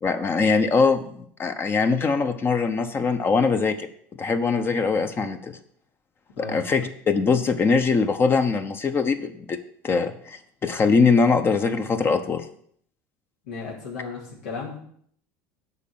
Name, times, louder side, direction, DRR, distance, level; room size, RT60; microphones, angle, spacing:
voice 1, 0.0-3.9 4.2-5.5 6.4-9.6 9.8-12.5, left 4 dB, 30° left, 8 dB, 0.9 m, -22 dB
voice 2, 13.4-14.8, left 4 dB, 85° left, -6 dB, 2.9 m, -34 dB
8.3 x 5.3 x 7.5 m, 0.64 s
supercardioid pair, 95°, 7 cm